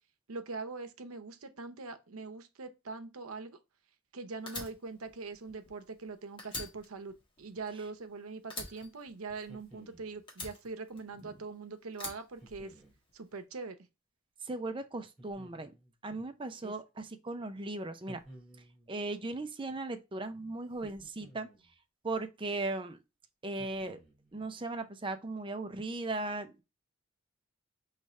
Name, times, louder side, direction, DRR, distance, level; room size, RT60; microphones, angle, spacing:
voice 1, 0.3-3.6 4.1-12.8 13.1-13.8 16.6-16.7, right 4 dB, 85° right, 0.8 m, -42 dB
Fire, 4.5-6.1 6.4-8.1 8.5-9.8 10.3-11.4 11.9-13.1, left 2 dB, 25° left, 1.6 m, -44 dB
sound 1, 9.4-10.2 12.4-13.0 15.2-16.0 18.1-18.9 20.7-21.7 23.6-24.3, right 1 dB, ahead, 2.7 m, -54 dB
voice 2, 14.4-15.7 16.0-18.2 18.9-21.5 22.0-23.0 23.4-24.0 24.3-26.6, right 2 dB, 25° right, 0.5 m, -37 dB
5.0 x 3.2 x 3.2 m
head